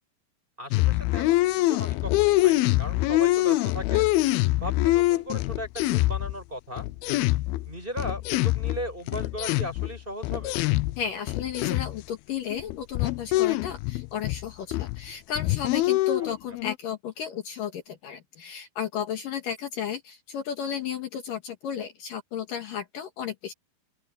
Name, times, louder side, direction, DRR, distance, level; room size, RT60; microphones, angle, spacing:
voice 1, 0.6-4.1 4.6-6.9 7.7-10.6 16.2-16.3, equal, 10° right, 7.7 m, -37 dB
sound 1, 0.7-6.4 6.8-11.0 11.3-12.0 12.5-14.5 14.7-15.1 15.4-16.8, left 18 dB, 85° left, 2.5 m, -24 dB
voice 2, 11.0-23.5, left 8 dB, 65° left, 3.2 m, -34 dB
open air
omnidirectional pair, 4.3 m